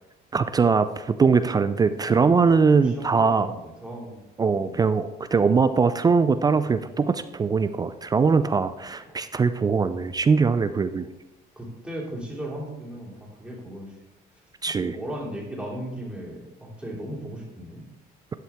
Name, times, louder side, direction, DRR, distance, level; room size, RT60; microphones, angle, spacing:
voice 1, 0.3-3.5 4.4-11.1 14.6-15.0, right 5 dB, 25° right, 12 dB, 0.3 m, -21 dB
voice 2, 2.0-4.2 4.6-4.8 11.6-13.9 14.8-17.8, right 1 dB, 5° right, -4 dB, 2.7 m, -37 dB
11.5 x 5.6 x 3.5 m, 1.0 s
cardioid pair, 110°, 17 cm